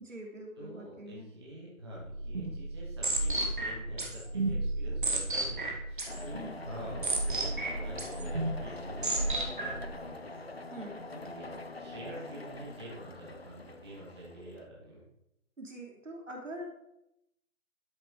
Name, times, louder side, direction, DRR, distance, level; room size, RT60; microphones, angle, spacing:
voice 1, 0.0-1.3 10.7-11.0 15.6-16.7, right 1 dB, 55° right, 1 dB, 3.3 m, -43 dB
voice 2, 0.6-10.5 11.1-15.0, right 1 dB, 15° right, -6 dB, 2.3 m, -46 dB
sound 1, 2.0-9.9, right 2 dB, 35° right, 2.1 m, -33 dB
sound 2, 6.1-14.7, left 2 dB, 45° left, 0.7 m, -44 dB
12.5 x 6.9 x 5.0 m, 0.85 s
figure-of-eight pair, 170°, 44 cm